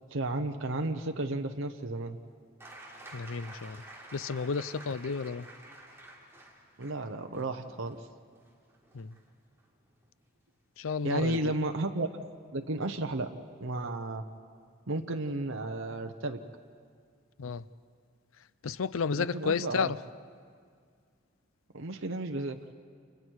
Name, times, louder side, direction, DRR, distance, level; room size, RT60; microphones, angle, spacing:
voice 1, 0.1-2.2 6.8-8.1 11.0-12.1 12.5-13.3 13.6-14.2 14.9-16.4 19.2-19.9 21.7-22.6, right 2 dB, 70° right, 1.0 m, -33 dB
sound 1, 2.6-10.1 11.3-11.4, right 1 dB, 15° right, 3.5 m, -51 dB
voice 2, 3.1-3.8 4.1-5.5 8.9-9.1 10.8-11.5 17.4-17.6 18.6-20.0, left 5 dB, 80° left, 0.5 m, -32 dB
30.0 x 28.0 x 4.7 m
head